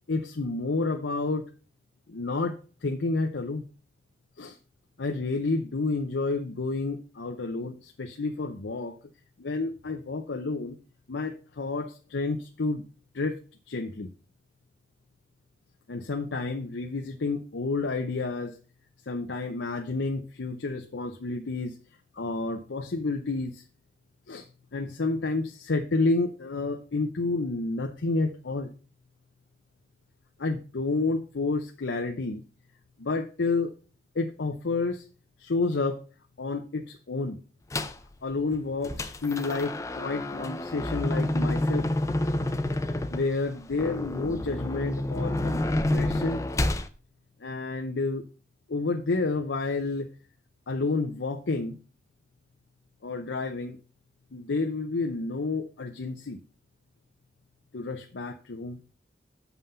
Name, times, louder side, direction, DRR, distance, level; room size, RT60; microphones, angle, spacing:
voice 1, 0.1-1.5 2.1-3.6 4.4-4.6 5.0-9.0 9.4-10.8 11.1-12.8 13.1-13.4 13.7-14.1 15.9-18.6 19.1-21.8 22.1-23.6 24.3-24.5 24.7-28.7 30.4-32.4 33.0-33.7 34.1-35.1 35.4-36.0 36.4-37.4 38.2-41.9 43.1-46.4 47.4-48.2 48.7-50.1 50.7-51.8 53.0-53.8 54.3-56.4 57.7-58.8, left 3 dB, 85° left, 5 dB, 0.7 m, -30 dB
sound 1, 37.7-38.1 38.5-46.9, left 1 dB, 15° left, 0.5 m, -29 dB
7.1 x 5.7 x 5.4 m, 0.36 s
head